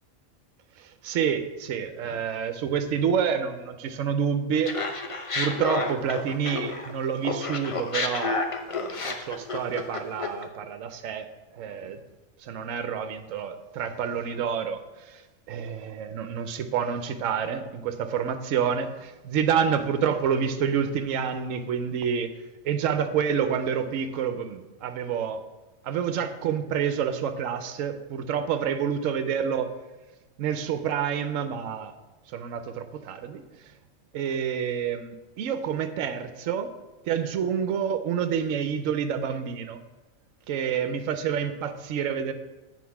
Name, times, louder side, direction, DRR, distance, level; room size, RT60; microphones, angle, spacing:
voice 1, 0.8-4.7 5.3-8.4 8.7-11.3 11.5-12.0 12.4-22.3 22.6-25.4 25.8-29.7 30.4-31.9 32.3-33.4 34.1-36.7 37.1-39.8 40.5-42.3, right 7 dB, 70° right, 8 dB, 1.0 m, -28 dB
Laughter, 4.6-6.9 7.2-10.4, left 3 dB, 45° left, 0.4 m, -30 dB
8.3 x 4.3 x 5.8 m, 1.1 s
omnidirectional pair, 1.5 m